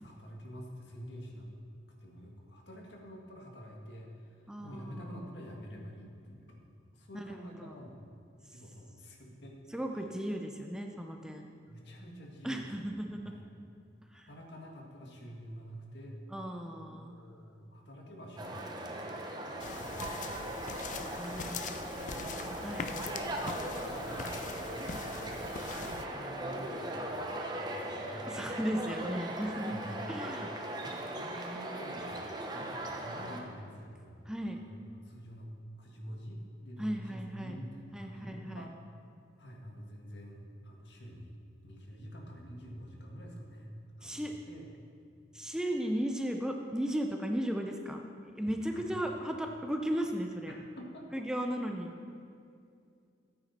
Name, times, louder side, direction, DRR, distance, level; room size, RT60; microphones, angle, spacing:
voice 1, 0.0-1.5 2.0-6.6 6.9-8.0 8.5-9.6 11.7-12.9 13.2-13.5 14.1-16.2 16.5-20.8 21.9-28.6 29.7-30.0 31.1-32.2 32.5-38.8 39.4-41.4 41.6-44.7 48.7-48.9 50.5-51.2, equal, 70° left, 0 dB, 1.8 m, -48 dB
voice 2, 4.5-5.1 7.1-7.7 9.7-11.5 12.4-13.2 14.1-14.3 16.3-17.2 21.2-21.9 22.6-22.9 28.3-29.7 30.1-30.5 34.3-34.6 36.8-37.6 37.9-38.7 44.0-44.3 45.3-48.1 48.3-50.5 51.1-51.9, equal, 5° right, 3 dB, 0.6 m, -36 dB
sound 1, 18.4-33.4, right 1 dB, 25° right, 0.9 m, -39 dB
sound 2, 19.6-26.0, left 5 dB, 45° left, 0.5 m, -42 dB
14.0 x 9.0 x 4.3 m, 2.4 s
head